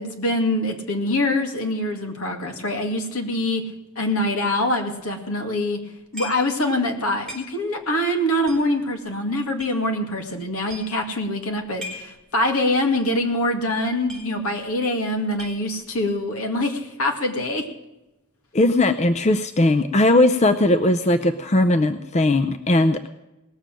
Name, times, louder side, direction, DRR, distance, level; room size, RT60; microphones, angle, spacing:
voice 1, 0.0-3.7 4.0-5.8 6.1-17.7, left 1 dB, 70° left, 4 dB, 2.3 m, -24 dB
sound 1, 5.0-5.1 6.1-6.6 6.9-7.0 7.3-7.8 8.4-9.7 10.3-10.4 10.6-11.0 11.6-12.2 12.5-12.6 13.0-13.2 13.4-13.5 13.8-14.7 15.0-15.9, left 1 dB, 5° left, 3.3 m, -39 dB
voice 2, 18.5-23.1, left 1 dB, 30° left, 10 dB, 0.5 m, -18 dB
18.5 x 7.2 x 7.5 m, 0.99 s
head